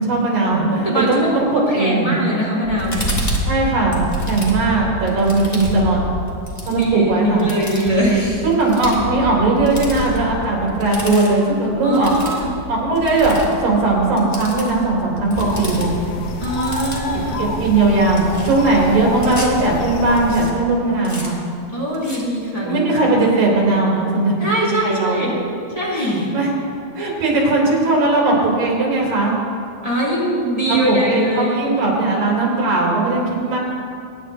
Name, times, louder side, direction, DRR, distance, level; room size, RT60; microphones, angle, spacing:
voice 1, 0.0-2.1 3.4-6.0 6.6-7.5 8.4-12.1 12.7-15.9 17.1-21.4 22.6-24.3 24.6-25.2 26.3-26.6 26.9-29.4 30.7-33.6, right 2 dB, 75° right, -3 dB, 4.4 m, -18 dB
voice 2, 0.7-1.4 1.7-3.1 6.7-8.4 11.8-12.5 16.4-17.5 21.7-22.8 24.4-25.4 25.7-26.3 29.8-32.0, right 1 dB, 10° left, -7 dB, 2.5 m, -22 dB
sound 1, 2.6-17.2 17.7-19.6 20.2-20.5 21.0-21.3 21.9-22.2, equal, 40° left, 0.5 m, -29 dB
sound 2, 15.3-20.4, left 3 dB, 80° left, 2.5 m, -26 dB
23.5 x 10.0 x 2.7 m, 2.4 s
omnidirectional pair, 3.9 m